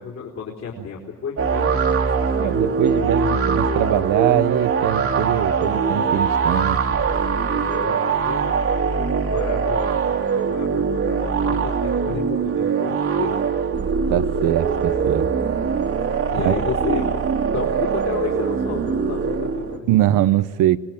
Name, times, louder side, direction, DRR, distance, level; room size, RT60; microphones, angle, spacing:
voice 1, 0.0-1.8 2.2-2.8 7.5-8.5 9.0-10.0 10.3-13.4 16.3-17.0 17.5-19.9, left 6 dB, 55° left, -3 dB, 4.1 m, -31 dB
sound 1, 1.4-19.8, right 5 dB, 45° right, 2.2 m, -22 dB
voice 2, 2.3-6.8 14.1-15.3 16.4-16.5 19.9-20.8, right 13 dB, 85° right, 14 dB, 1.0 m, -22 dB
26.5 x 19.0 x 9.1 m, 1.3 s
cardioid pair, 110°, 31 cm